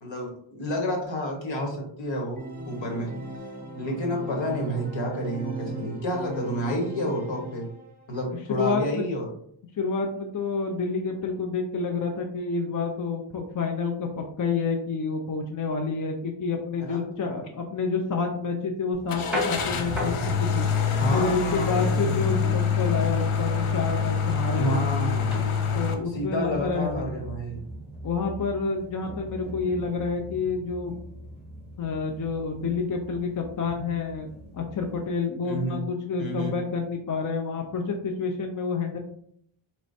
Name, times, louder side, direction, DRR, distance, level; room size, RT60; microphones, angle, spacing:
voice 1, 0.0-3.1 3.8-7.7 8.1-9.3 16.8-17.1 21.0-22.4 24.6-25.4 26.1-27.6 35.4-35.8 36.2-36.5, equal, 65° left, 0 dB, 1.3 m, -30 dB
Organ, 2.3-8.1, right 2 dB, 20° right, 0.5 m, -38 dB
voice 2, 8.5-9.1 9.8-20.7 21.1-27.0 28.0-30.9 31.8-34.3 34.5-39.0, left 4 dB, 40° left, 3 dB, 0.4 m, -29 dB
sound 1, 18.9-35.1, equal, ahead, 0.9 m, -40 dB
Car / Engine starting, 19.1-25.9, left 6 dB, 85° left, 0.7 m, -26 dB
4.4 x 3.1 x 2.6 m, 0.66 s
wide cardioid pair, 160°, 49 cm